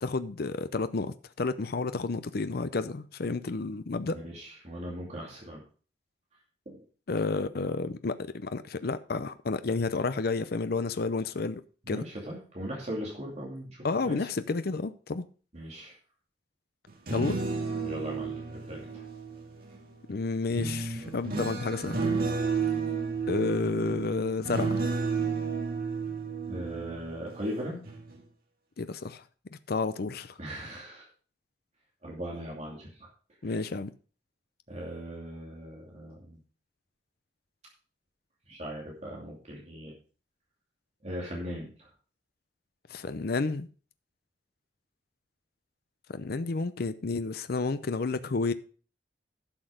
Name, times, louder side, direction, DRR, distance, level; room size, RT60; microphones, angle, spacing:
voice 1, 0.0-4.2 7.1-11.6 11.9-12.0 13.8-15.2 17.1-17.4 20.1-22.0 23.3-24.8 28.8-29.2 29.7-30.3 33.4-33.9 42.9-43.7 46.1-48.5, left 3 dB, 60° left, 0.6 m, -31 dB
voice 2, 4.1-5.6 6.7-6.8 11.8-14.3 15.5-16.0 17.8-19.0 21.1-21.2 26.5-27.8 30.4-31.1 32.0-33.1 33.4-33.7 34.7-36.4 38.5-39.9 41.0-41.9, equal, 40° right, 2.7 m, -39 dB
sound 1, 16.9-19.8 20.5-27.5 27.8-28.2, right 4 dB, 60° right, 2.0 m, -32 dB
11.5 x 6.2 x 5.0 m
head